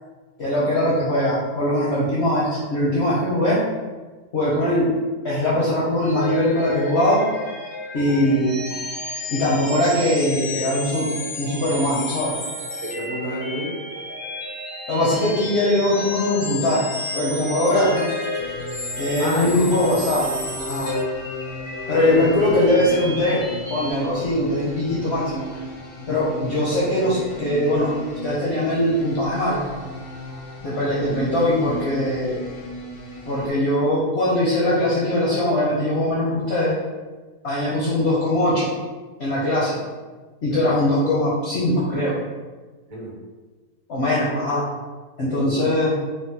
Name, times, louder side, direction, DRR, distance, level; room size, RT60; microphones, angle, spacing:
voice 1, 0.4-3.6 4.3-4.9 5.2-7.2 7.9-8.6 9.3-11.1 11.4-12.3 14.9-18.0 19.0-20.9 21.9-23.4 23.7-25.5 26.1-27.9 28.2-29.6 30.6-32.4 33.3-36.7 37.4-38.7 39.2-39.8 40.4-42.2 43.9-44.6 45.2-45.9, left 1 dB, 65° left, -7 dB, 0.6 m, -21 dB
sound 1, 6.0-23.9, left 2 dB, 30° left, 0.4 m, -31 dB
voice 2, 12.8-13.8 19.2-19.6 40.5-40.7 42.9-43.2 45.3-45.7, right 1 dB, 60° right, -5 dB, 1.2 m, -30 dB
sound 2, 18.4-33.5, left 2 dB, 85° left, 1.2 m, -36 dB
3.6 x 2.0 x 2.7 m, 1.3 s
omnidirectional pair, 1.7 m